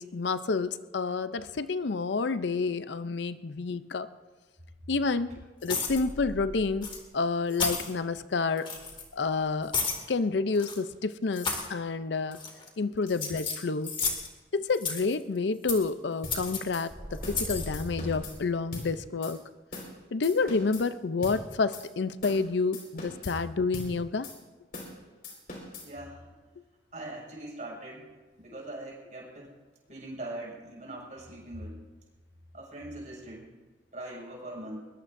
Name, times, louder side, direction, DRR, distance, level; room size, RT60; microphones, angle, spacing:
voice 1, 0.0-4.1 4.9-5.3 5.6-8.7 9.1-9.7 10.1-12.4 12.8-13.9 14.5-19.4 20.1-24.3, left 4 dB, 70° left, 13 dB, 0.5 m, -29 dB
sound 1, 5.6-6.0 6.8-7.0 7.5-7.9 8.6-9.1 9.7-10.0 10.6-10.8 11.3-11.7 12.3-12.7 13.1-14.3 14.7-15.2 15.7-15.9 16.3-16.6 17.2-17.7, left 5 dB, 30° left, 2.3 m, -32 dB
sound 2, 5.8-7.1 8.8-9.7 16.6-18.3, left 1 dB, 20° right, 4.5 m, -40 dB
sound 3, 16.2-16.4 16.7-16.9 17.2-17.4 17.7-18.4 18.7-18.9 19.2-19.3 19.7-19.9 20.2-20.9 21.2-21.4 21.7-21.9 22.2-22.4 22.7-23.4 23.7-23.9 24.2-24.4 24.7-24.9 25.2-25.9, left 2 dB, 55° left, 4.5 m, -41 dB
voice 2, 25.8-26.4 26.9-28.0 28.4-29.5 29.9-31.8 32.5-33.5 33.9-34.8, right 1 dB, 45° right, -3 dB, 6.2 m, -41 dB
21.5 x 21.0 x 2.6 m, 1.3 s
head